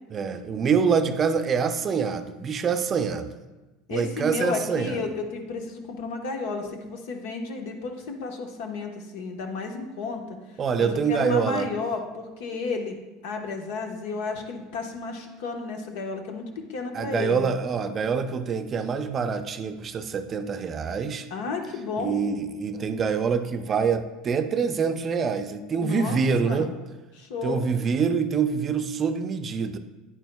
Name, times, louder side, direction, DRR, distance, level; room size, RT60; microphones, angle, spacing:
voice 1, 0.1-3.3 3.9-5.0 10.6-11.7 16.9-21.3 22.0-26.7 27.4-29.8, right 6 dB, 35° right, 9 dB, 0.5 m, -25 dB
voice 2, 3.9-10.4 10.8-13.0 13.2-17.5 21.3-22.2 25.8-26.8 27.1-27.7, left 4 dB, 75° left, 3 dB, 1.1 m, -32 dB
9.9 x 9.1 x 2.3 m, 1.1 s
supercardioid pair, 110°, 0 cm